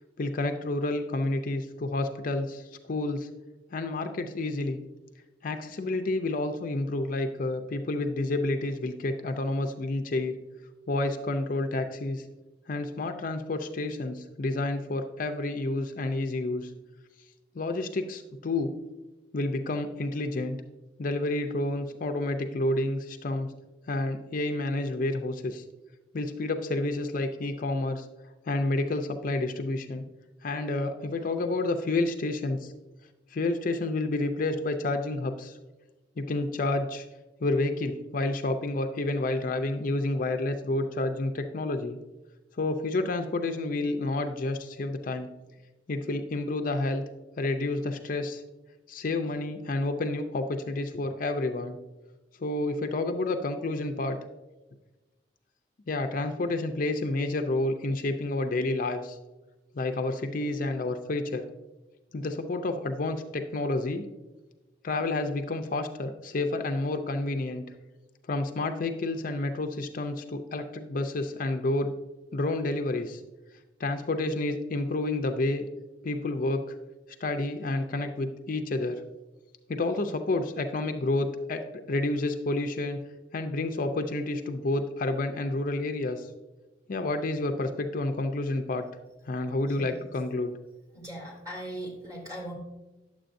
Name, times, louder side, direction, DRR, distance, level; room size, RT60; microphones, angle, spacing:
voice 1, 0.2-3.3 3.7-4.8 5.4-10.4 10.9-12.3 12.7-16.7 17.5-18.7 19.3-20.6 21.0-23.5 23.9-25.6 26.1-28.1 28.5-30.0 30.4-32.7 33.3-35.6 36.2-37.1 37.4-42.0 42.6-45.3 45.9-47.0 47.4-48.4 48.9-51.8 52.4-54.2 55.9-59.2 59.7-61.4 62.1-64.0 64.8-67.7 68.3-71.9 72.3-73.2 73.8-75.6 76.0-76.8 77.2-79.0 79.7-83.0 83.3-86.3 86.9-88.9 89.3-90.6, left 2 dB, 50° left, 6 dB, 0.5 m, -29 dB
voice 2, 90.9-92.5, right 1 dB, 20° right, -2 dB, 2.5 m, -39 dB
10.0 x 7.4 x 2.6 m, 1.1 s
head